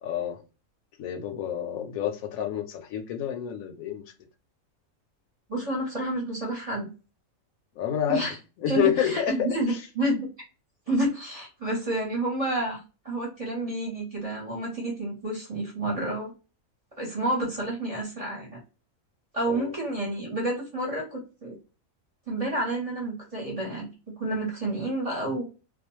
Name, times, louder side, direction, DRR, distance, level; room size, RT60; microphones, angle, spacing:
voice 1, 0.0-0.4 1.0-4.1 7.8-8.3 8.6-9.5 19.5-19.7, left 10 dB, 80° left, 1.0 m, -28 dB
voice 2, 5.5-6.9 8.1-8.4 8.6-10.3 10.9-16.3 17.0-18.6 19.3-21.6 22.3-25.4, right 1 dB, 30° right, 1.0 m, -29 dB
2.4 x 2.3 x 3.0 m
omnidirectional pair, 1.5 m